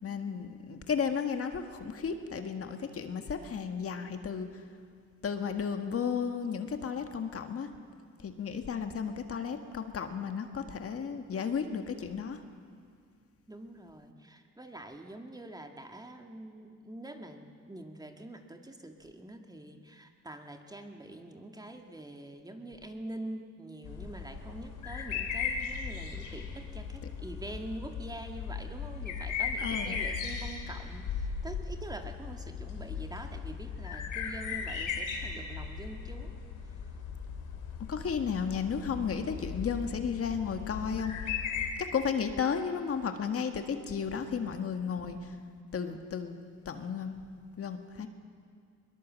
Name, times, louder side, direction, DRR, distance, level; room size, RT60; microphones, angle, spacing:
voice 1, 0.0-4.5 5.2-7.7 8.2-12.4 29.6-30.0 37.9-41.1 41.8-45.3 45.7-46.4 46.6-47.2 47.6-48.1, left 6 dB, 50° left, 6 dB, 1.7 m, -33 dB
voice 2, 13.5-36.4, right 1 dB, 15° right, 4 dB, 2.0 m, -45 dB
sound 1, 23.8-41.7, left 6 dB, 85° left, 3.3 m, -37 dB
21.5 x 21.5 x 7.6 m, 2.1 s
cardioid pair, 90°, 30 cm